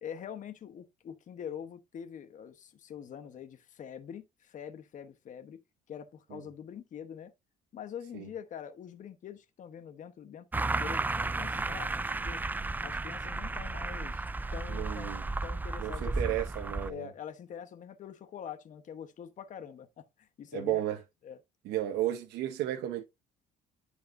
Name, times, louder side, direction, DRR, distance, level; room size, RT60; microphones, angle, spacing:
voice 1, 0.0-5.6 5.9-7.3 7.7-12.4 12.8-15.1 15.4-16.4 16.9-20.8 21.2-21.4, left 8 dB, 50° left, 1.1 m, -44 dB
sound 1, 10.5-16.9, right 3 dB, 10° right, 0.3 m, -33 dB
voice 2, 14.7-15.2 15.8-17.1 20.5-21.0 21.6-23.0, right 12 dB, 80° right, 1.0 m, -33 dB
11.0 x 4.7 x 2.7 m
cardioid pair, 110°, 17 cm